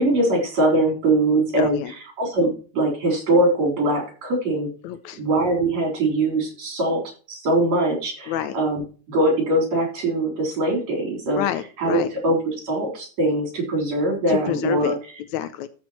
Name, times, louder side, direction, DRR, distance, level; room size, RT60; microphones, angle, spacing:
voice 1, 0.0-1.8 2.2-4.7 5.2-7.0 7.3-8.8 9.1-11.4 11.8-15.0, right 1 dB, 60° right, 1 dB, 5.2 m, -22 dB
voice 2, 1.6-1.9 4.8-5.2 8.3-8.6 11.4-12.1 14.3-14.9 15.3-15.7, left 11 dB, 80° left, 12 dB, 1.9 m, -27 dB
13.5 x 6.1 x 4.3 m, 0.37 s
omnidirectional pair, 3.5 m